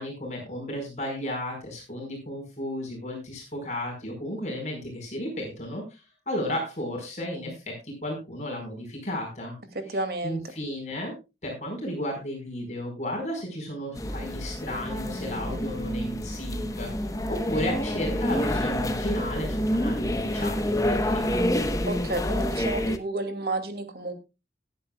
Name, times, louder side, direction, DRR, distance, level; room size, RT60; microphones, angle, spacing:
voice 1, 0.0-9.5 10.2-11.1 11.4-22.2, left 1 dB, 40° left, 1 dB, 4.9 m, -34 dB
voice 2, 9.7-10.4 21.9-24.1, right 2 dB, 60° right, 8 dB, 2.5 m, -31 dB
sound 1, 14.0-23.0, left 1 dB, 20° left, 1.0 m, -28 dB
18.0 x 11.0 x 2.3 m, 0.27 s
head